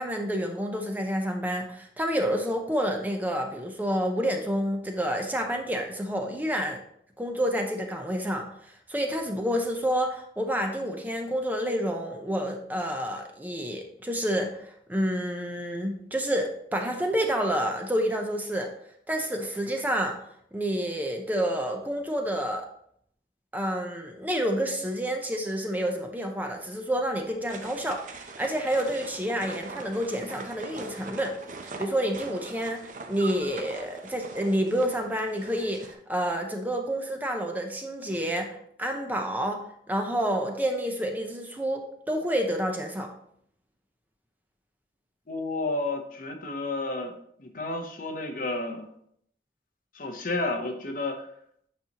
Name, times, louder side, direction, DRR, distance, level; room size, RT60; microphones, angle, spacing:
voice 1, 0.0-6.8 7.2-8.5 8.9-18.7 19.1-20.2 20.5-22.7 23.5-31.4 31.8-32.8 33.1-39.6 39.9-43.1, equal, 10° right, 3 dB, 0.7 m, -29 dB
sound 1, 27.5-35.9, right 3 dB, 45° right, 0.7 m, -42 dB
voice 2, 45.3-47.1 47.4-48.9 49.9-51.2, left 2 dB, 50° left, 5 dB, 0.9 m, -31 dB
8.9 x 5.3 x 2.9 m, 0.68 s
head